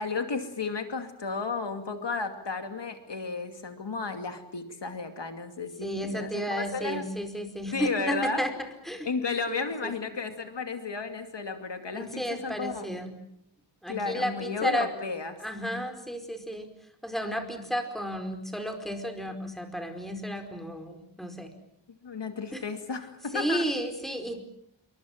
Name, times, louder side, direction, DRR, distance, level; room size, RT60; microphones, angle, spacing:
voice 1, 0.0-7.0 7.7-8.4 9.0-12.1 12.4-12.9 13.9-15.4 22.0-23.7, left 4 dB, 65° left, 7 dB, 2.6 m, -33 dB
voice 2, 5.8-8.5 8.8-9.1 9.5-9.9 11.9-13.2 13.8-14.9 15.4-16.7 17.0-21.5 22.5-22.6 23.3-24.4, equal, ahead, 6 dB, 4.7 m, -33 dB
28.0 x 24.0 x 7.4 m, 0.75 s
wide cardioid pair, 105°, 46 cm